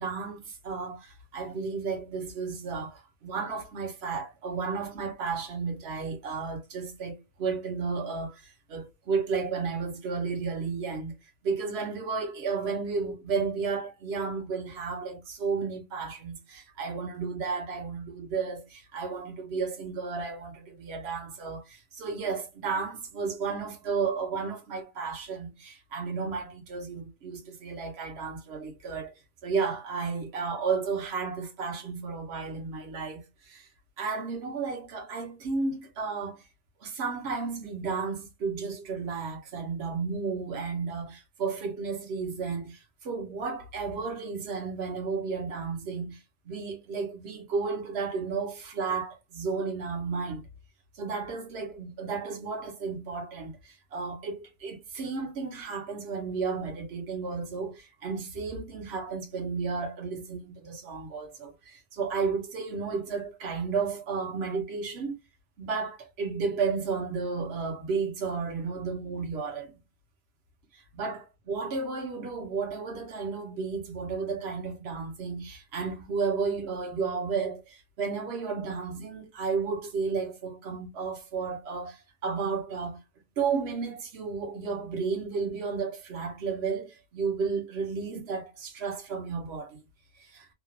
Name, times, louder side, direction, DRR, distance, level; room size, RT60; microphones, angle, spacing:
voice 1, 0.0-11.1 11.4-29.1 29.4-33.7 34.0-36.4 36.8-46.2 46.4-50.5 50.9-65.2 65.6-69.7 70.7-83.0 83.4-89.8 90.2-90.5, right 5 dB, 55° right, 1.1 m, -33 dB
2.9 x 2.4 x 2.5 m
omnidirectional pair, 1.4 m